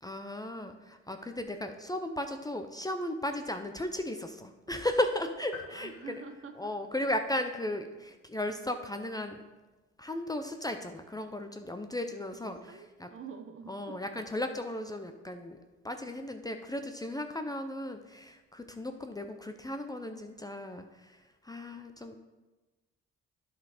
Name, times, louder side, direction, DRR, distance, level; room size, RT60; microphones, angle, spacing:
voice 1, 0.0-5.9 6.6-9.4 10.0-12.6 13.0-13.1 13.7-15.6 15.8-21.2 21.4-22.2, left 1 dB, 15° left, 6 dB, 0.6 m, -35 dB
sound 1, 5.5-7.3, left 5 dB, 50° left, 1.2 m, -49 dB
voice 2, 5.7-6.7 12.4-14.0, right 5 dB, 45° right, 7 dB, 0.9 m, -47 dB
11.0 x 4.2 x 4.9 m, 1.2 s
cardioid pair, 90°, 30 cm